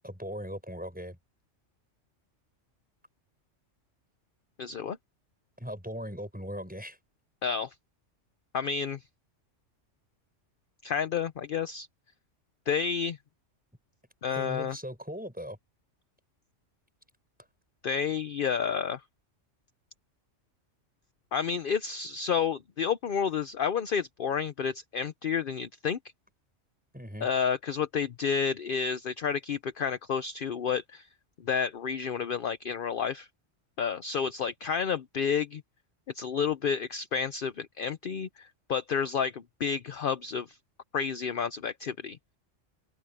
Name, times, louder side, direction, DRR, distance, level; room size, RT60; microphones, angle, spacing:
voice 1, 0.0-1.2 5.6-7.0 14.3-15.6 26.9-27.3, equal, 5° right, 5.8 m, -39 dB
voice 2, 4.6-5.0 7.4-7.7 8.5-9.0 10.8-11.9 12.7-13.2 14.2-14.8 17.8-19.0 21.3-26.0 27.2-31.1 31.4-33.3 33.8-35.6 36.1-40.6 40.9-42.2, left 6 dB, 50° left, 0.8 m, -30 dB
omnidirectional pair, 1.3 m